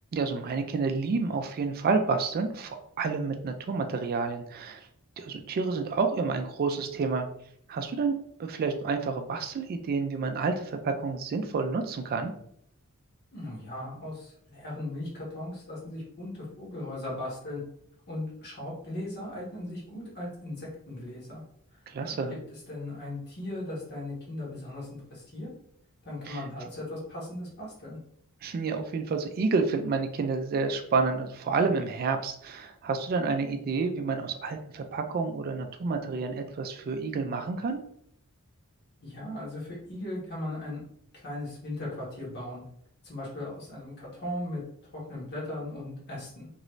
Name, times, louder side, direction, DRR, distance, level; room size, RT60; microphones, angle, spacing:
voice 1, 0.1-4.9 5.2-7.3 7.7-12.3 21.9-22.4 26.3-26.4 28.4-37.8, right 4 dB, 45° right, 6 dB, 0.3 m, -29 dB
voice 2, 13.3-17.6 18.1-21.4 22.0-22.1 22.7-25.5 26.0-28.0 39.0-40.8 41.1-42.6 43.0-44.6 44.9-46.5, left 1 dB, 50° left, -4 dB, 1.4 m, -38 dB
3.0 x 2.6 x 3.0 m, 0.69 s
head